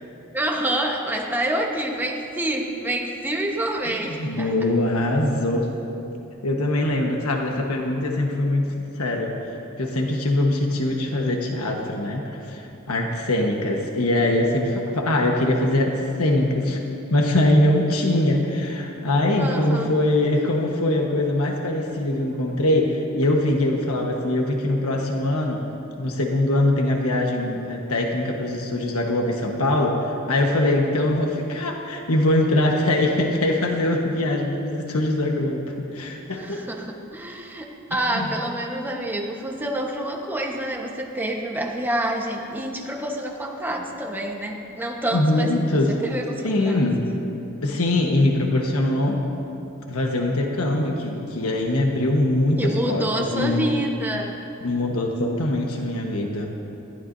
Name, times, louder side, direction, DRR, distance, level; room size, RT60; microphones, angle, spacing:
voice 1, 0.3-4.5 19.4-19.9 36.3-46.8 52.6-54.4, right 1 dB, 10° right, 0 dB, 1.1 m, -27 dB
voice 2, 4.2-5.7 6.4-9.3 9.8-16.8 17.1-25.6 26.0-36.7 37.9-38.3 45.1-46.0 46.4-47.1 47.6-49.3 49.9-53.7 54.6-56.5, left 1 dB, 80° left, 1 dB, 1.3 m, -22 dB
21.0 x 14.5 x 2.7 m, 2.9 s
head